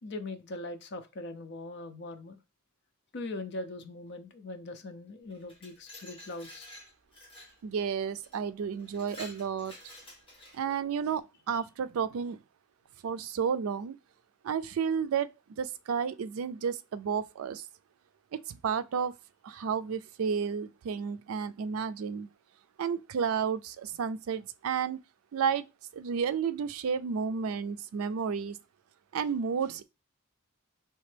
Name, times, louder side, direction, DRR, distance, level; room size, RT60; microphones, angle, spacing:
voice 1, 0.0-2.4 3.1-6.7, left 2 dB, 55° left, 0.6 m, -41 dB
Glass, 5.3-7.6 8.2-8.4 8.8-10.8, left 1 dB, 25° left, 1.4 m, -50 dB
voice 2, 7.6-9.7 10.5-12.4 13.0-14.0 14.4-15.3 15.6-17.7 18.3-19.1 19.4-22.3 22.8-25.0 25.3-25.7 25.9-28.6 29.1-29.8, right 6 dB, 80° right, 0.4 m, -31 dB
4.2 x 3.3 x 3.3 m
head